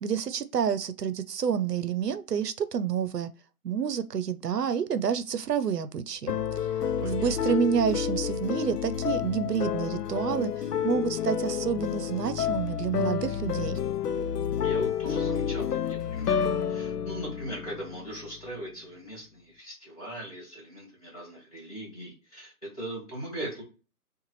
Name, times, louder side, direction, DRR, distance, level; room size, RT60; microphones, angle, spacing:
voice 1, 0.0-3.3 3.6-6.3 7.0-10.5 10.8-13.8, right 7 dB, 85° right, 0.7 m, -28 dB
A Minor intro, 6.3-18.4, left 8 dB, 80° left, 0.6 m, -30 dB
voice 2, 7.0-7.6 14.6-23.6, right 1 dB, 25° left, 1.8 m, -40 dB
6.7 x 2.5 x 3.1 m
hypercardioid pair, 180°, 46 cm